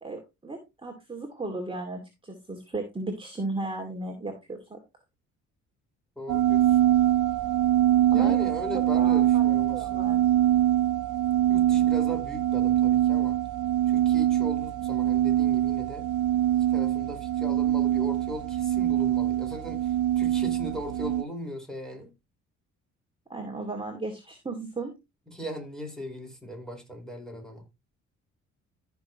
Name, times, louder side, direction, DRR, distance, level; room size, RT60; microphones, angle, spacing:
voice 1, 0.0-4.8 8.1-8.4 8.9-9.4 9.7-10.2 23.3-24.9, right 2 dB, 15° right, 2.4 m, -35 dB
voice 2, 6.2-6.8 8.1-10.2 11.5-13.4 13.9-16.1 16.5-22.1 25.3-27.6, equal, ahead, 4.7 m, -38 dB
sound 1, 6.3-21.2, right 12 dB, 75° right, 0.6 m, -24 dB
14.5 x 6.2 x 3.0 m
cardioid pair, 90°, 30 cm